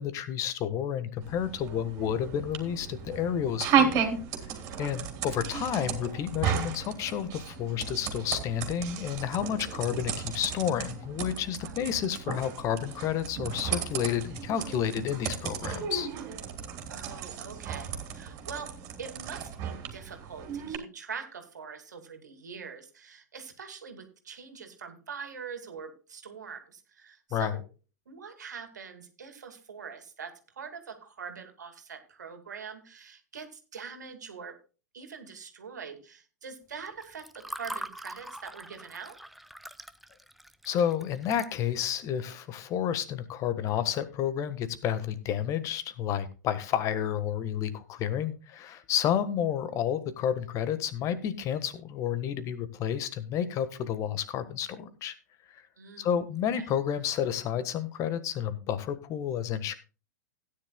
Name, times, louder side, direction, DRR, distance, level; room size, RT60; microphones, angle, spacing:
voice 1, 0.0-4.0 4.8-16.1 27.3-27.5 40.6-55.1 55.5-55.6 56.0-59.7, left 9 dB, 35° left, 13 dB, 1.4 m, -30 dB
sound 1, 1.2-20.8, right 7 dB, 35° right, 3.2 m, -34 dB
voice 2, 4.7-5.1 11.6-11.8 16.9-18.7 19.0-27.6 28.1-34.5 34.9-39.2 55.8-56.1 56.6-56.7, right 6 dB, 75° right, 7 dB, 2.3 m, -43 dB
Water / Fill (with liquid), 36.9-42.0, right 1 dB, ahead, 0.6 m, -43 dB
16.5 x 10.0 x 2.3 m, 0.34 s
figure-of-eight pair, 100°, 10 cm